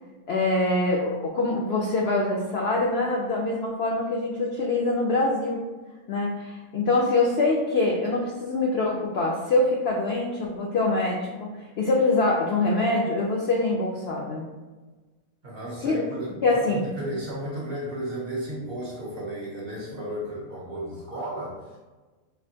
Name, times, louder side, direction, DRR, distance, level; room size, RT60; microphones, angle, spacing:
voice 1, 0.3-5.7 6.1-11.5 11.8-14.5 15.8-16.0 16.4-16.8, left 2 dB, 70° left, -2 dB, 0.6 m, -24 dB
voice 2, 15.4-21.8, right 1 dB, 55° right, -4 dB, 0.7 m, -34 dB
4.2 x 2.5 x 2.7 m, 1.2 s
omnidirectional pair, 1.6 m